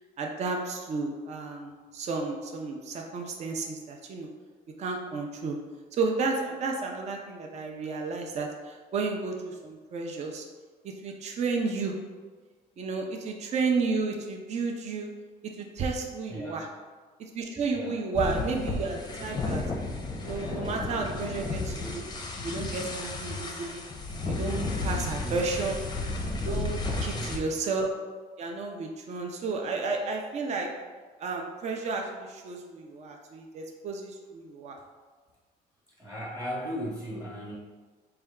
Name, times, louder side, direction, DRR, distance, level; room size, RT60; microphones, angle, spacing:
voice 1, 0.2-4.3 4.8-5.6 5.9-10.4 11.0-11.9 12.8-15.1 15.6-16.7 17.2-19.6 20.2-22.1 22.4-23.8 24.3-25.8 26.4-27.9 28.4-30.7 31.2-34.8, right 4 dB, 40° right, 2 dB, 0.5 m, -32 dB
voice 2, 16.3-16.7 17.7-18.0 24.9-25.5 26.8-27.3 36.0-37.6, equal, 25° right, -6 dB, 1.0 m, -37 dB
sound 1, 18.1-27.4, left 3 dB, 25° left, 0.5 m, -33 dB
4.2 x 2.3 x 3.5 m, 1.4 s
cardioid pair, 110°, 17 cm